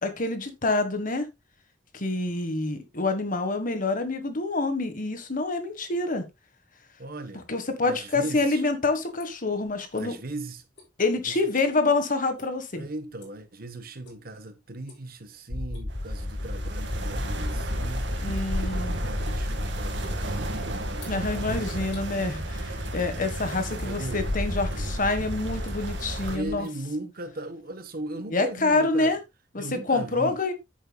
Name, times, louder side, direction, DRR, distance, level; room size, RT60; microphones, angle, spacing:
voice 1, 0.0-1.3 1.9-6.3 7.5-10.1 11.0-12.8 18.2-19.0 21.1-26.7 28.3-29.2 29.5-30.5, left 3 dB, 45° left, 1.6 m, -27 dB
voice 2, 7.0-7.4 7.8-8.6 9.9-10.6 11.3-11.4 12.7-18.1 18.9-21.4 23.7-24.2 24.7-24.9 26.3-29.2 29.6-30.4, right 2 dB, 55° right, 1.2 m, -38 dB
sound 1, 9.0-10.4 10.7-12.0 12.3-12.6 12.9-13.5 14.0-14.4 14.7-15.1 15.5-16.1 16.5-17.7 18.0-22.1 22.8-23.4 23.6-24.3 24.7-24.9 25.4-26.1 26.4-27.5, left 3 dB, 65° left, 6.3 m, -53 dB
sound 2, 15.5-26.6, left 1 dB, 20° left, 0.5 m, -33 dB
sound 3, 15.9-26.4, right 2 dB, 70° right, 2.1 m, -35 dB
10.0 x 8.7 x 2.4 m
head